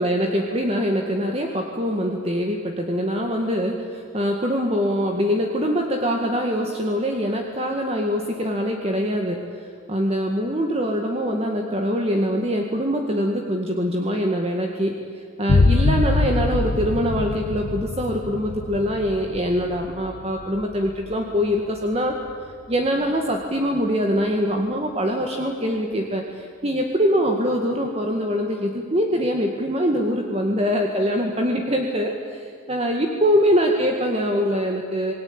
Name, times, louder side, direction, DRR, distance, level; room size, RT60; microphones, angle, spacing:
voice 1, 0.0-22.1 22.7-35.1, equal, 30° right, 2 dB, 2.0 m, -23 dB
sound 1, 15.5-22.9, left 3 dB, 85° left, 0.8 m, -24 dB
28.0 x 20.5 x 8.9 m, 2.3 s
head